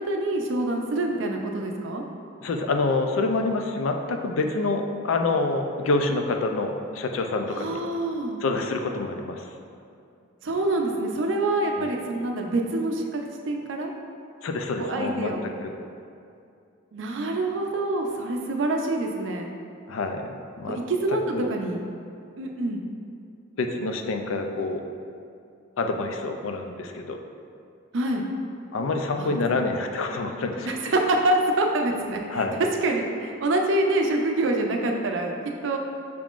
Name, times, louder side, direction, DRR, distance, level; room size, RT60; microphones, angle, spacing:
voice 1, 0.0-2.0 7.5-8.4 10.4-13.9 14.8-15.5 16.9-19.5 20.6-21.8 22.4-22.8 27.9-28.2 29.2-29.3 30.6-32.4 32.8-35.8, right 2 dB, 65° right, 2 dB, 0.5 m, -26 dB
voice 2, 2.4-7.8 8.4-9.5 11.8-11.9 14.4-15.3 15.6-15.7 19.9-20.3 20.6-20.8 21.3-21.5 23.6-24.8 25.8-27.2 28.7-30.7 32.3-32.6, left 3 dB, 80° left, 4 dB, 0.4 m, -27 dB
5.9 x 3.6 x 2.4 m, 2.5 s
head